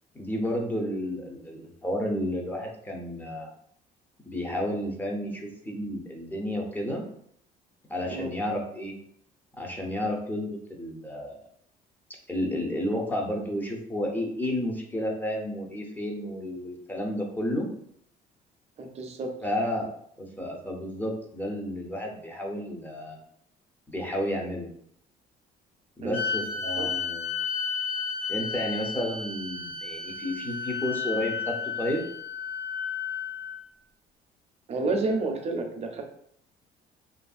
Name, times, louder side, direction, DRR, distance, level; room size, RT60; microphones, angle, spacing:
voice 1, 0.1-3.5 4.3-7.0 7.9-9.0 9.6-11.3 12.3-17.7 19.4-19.9 20.2-23.2 23.9-24.7 26.0-27.4 28.3-32.0, left 1 dB, 10° left, 0 dB, 0.6 m, -31 dB
voice 2, 18.8-19.3 26.0-26.2 26.8-26.9 34.7-36.0, right 3 dB, 40° right, 3 dB, 0.6 m, -30 dB
sound 1, 26.1-33.6, left 6 dB, 85° left, 1.4 m, -32 dB
2.8 x 2.5 x 2.4 m, 0.67 s
cardioid pair, 110°, 17 cm